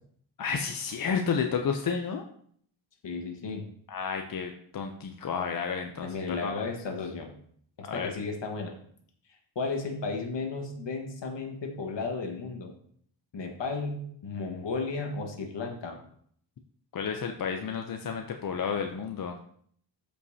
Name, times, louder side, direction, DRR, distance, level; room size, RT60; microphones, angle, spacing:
voice 1, 0.4-2.2 3.9-6.7 7.8-8.1 16.9-19.3, left 6 dB, 50° left, 4 dB, 0.6 m, -31 dB
voice 2, 3.0-3.6 6.0-7.3 7.8-8.8 9.5-12.7 13.3-16.0, left 4 dB, 65° left, 3 dB, 1.5 m, -34 dB
13.0 x 5.5 x 2.7 m, 0.62 s
wide cardioid pair, 130°, 46 cm